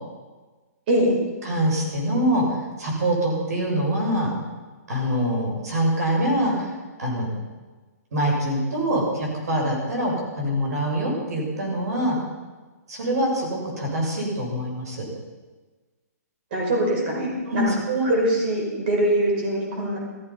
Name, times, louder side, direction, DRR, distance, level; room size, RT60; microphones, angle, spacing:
voice 1, 1.4-4.3 4.9-6.7 7.0-7.3 8.1-12.2 12.9-15.0 17.5-18.1, right 1 dB, 70° right, -2 dB, 6.9 m, -24 dB
voice 2, 16.5-17.6 18.0-20.0, right 1 dB, 35° right, -2 dB, 5.5 m, -23 dB
15.0 x 14.5 x 5.7 m, 1.3 s
hypercardioid pair, 165°, 9 cm